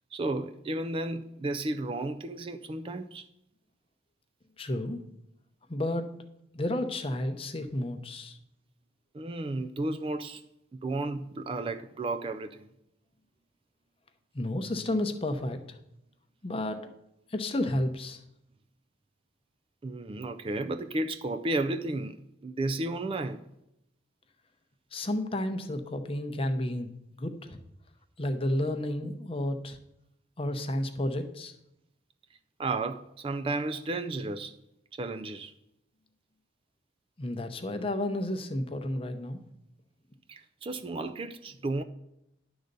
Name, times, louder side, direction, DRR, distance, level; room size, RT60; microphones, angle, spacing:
voice 1, 0.1-3.3 9.1-10.4 10.7-12.7 19.8-22.2 22.4-23.4 32.6-34.5 34.9-35.5 40.3-41.8, right 2 dB, 30° right, 0.3 m, -33 dB
voice 2, 4.6-5.0 5.7-6.1 6.5-8.4 14.3-15.8 16.4-16.8 17.3-18.2 24.9-27.6 28.2-29.8 30.4-31.5 37.2-39.4, left 1 dB, 30° left, 0.7 m, -31 dB
11.0 x 3.9 x 6.6 m
head